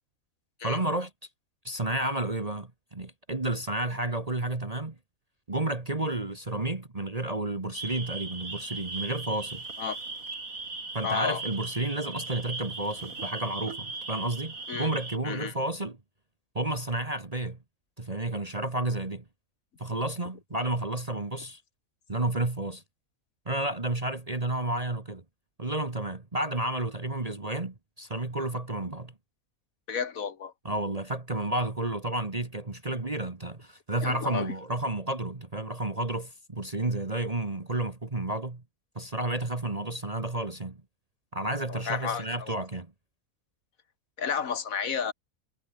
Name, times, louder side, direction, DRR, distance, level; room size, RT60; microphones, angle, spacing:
voice 1, 0.6-1.1 1.6-5.0 5.5-9.7 10.9-16.0 16.6-17.6 18.0-19.2 19.8-21.6 22.1-22.8 23.5-25.2 25.6-29.1 30.7-38.6 39.0-40.8 41.3-42.9, right 2 dB, 25° right, 1.9 m, -31 dB
sound 1, 7.7-15.2, right 3 dB, 80° right, 4.1 m, -38 dB
voice 2, 11.0-11.4 14.7-14.9 15.2-15.5 29.9-30.5 34.0-34.5 41.7-42.5 44.2-45.1, left 7 dB, 85° left, 2.0 m, -32 dB
omnidirectional pair, 1.4 m